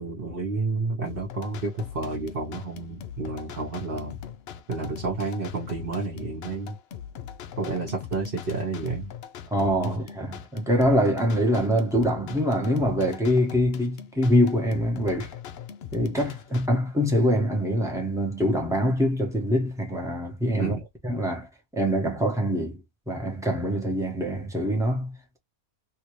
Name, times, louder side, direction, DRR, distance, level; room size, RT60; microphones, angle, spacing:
voice 1, 0.0-4.2 4.7-6.8 7.6-9.1 20.6-20.8, right 3 dB, 40° right, 1.1 m, -30 dB
sound 1, 1.1-16.7, left 8 dB, 85° left, 0.5 m, -41 dB
voice 2, 9.5-15.3 15.9-20.8 21.0-21.5 21.7-22.8 23.1-25.4, equal, 5° right, 0.8 m, -24 dB
2.8 x 2.7 x 3.0 m
omnidirectional pair, 1.6 m